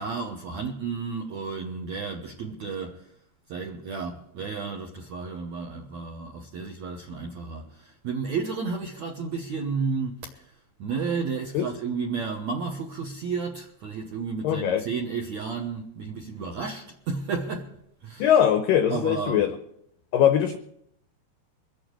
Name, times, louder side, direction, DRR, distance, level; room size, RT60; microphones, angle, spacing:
voice 1, 0.0-3.1 3.5-10.4 10.8-17.7 18.0-18.4 18.9-19.5, right 5 dB, 80° right, 1.6 m, -32 dB
voice 2, 14.4-14.8 18.2-19.6 20.1-20.6, left 9 dB, 85° left, 1.9 m, -21 dB
24.0 x 8.6 x 4.7 m
omnidirectional pair, 4.9 m